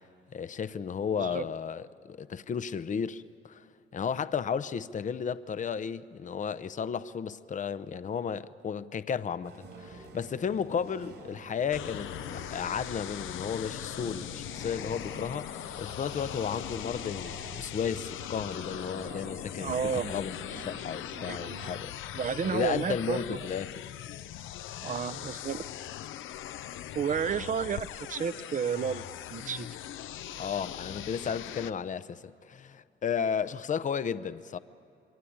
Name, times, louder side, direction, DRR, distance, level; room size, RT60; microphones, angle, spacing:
voice 1, 0.3-3.6 3.9-9.5 9.8-17.3 17.6-21.9 22.5-23.7 30.4-34.6, left 7 dB, 40° left, 0.7 m, -33 dB
voice 2, 1.2-1.5 19.6-20.1 21.1-21.4 22.1-23.5 24.8-25.6 26.9-29.0 29.3-29.7, right 7 dB, 40° right, 0.7 m, -31 dB
sound 1, 9.4-21.8, right 3 dB, 70° right, 4.2 m, -48 dB
sound 2, 11.7-31.7, left 11 dB, 80° left, 0.7 m, -40 dB
26.5 x 22.5 x 8.7 m
cardioid pair, 90°, 20 cm